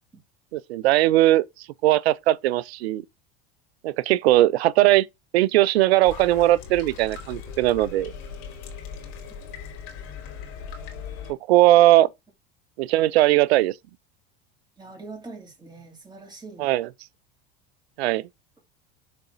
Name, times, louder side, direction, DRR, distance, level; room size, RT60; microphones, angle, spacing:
voice 1, 0.5-1.4 1.8-3.0 3.8-5.1 5.3-8.1 11.3-12.1 12.8-13.7 16.6-16.9 18.0-18.3, right 16 dB, 90° right, 0.5 m, -19 dB
sound 1, 6.0-11.3, left 6 dB, 70° left, 3.0 m, -39 dB
voice 2, 14.8-16.7, right 3 dB, 15° right, 3.5 m, -42 dB
6.7 x 4.1 x 3.9 m
supercardioid pair, 100°, 30 cm